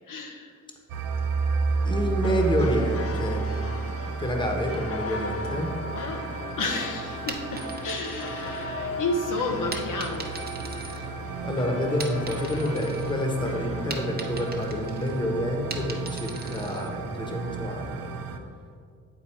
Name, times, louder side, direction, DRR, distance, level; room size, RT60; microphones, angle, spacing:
voice 1, 0.1-0.5 5.9-6.3 6.6-10.3, left 3 dB, 65° left, 2 dB, 0.8 m, -31 dB
sound 1, 0.9-18.4, right 4 dB, 75° right, 0.7 m, -32 dB
voice 2, 1.8-3.5 4.2-5.7 11.4-18.1, equal, 15° left, 1 dB, 1.1 m, -28 dB
sound 2, 2.2-14.0, left 5 dB, 40° left, 0.5 m, -39 dB
sound 3, 7.3-9.1 9.7-11.5 11.8-13.2 13.5-16.9, right 3 dB, 25° right, 0.9 m, -40 dB
8.7 x 4.0 x 4.4 m, 2.1 s
cardioid pair, 80°, 34 cm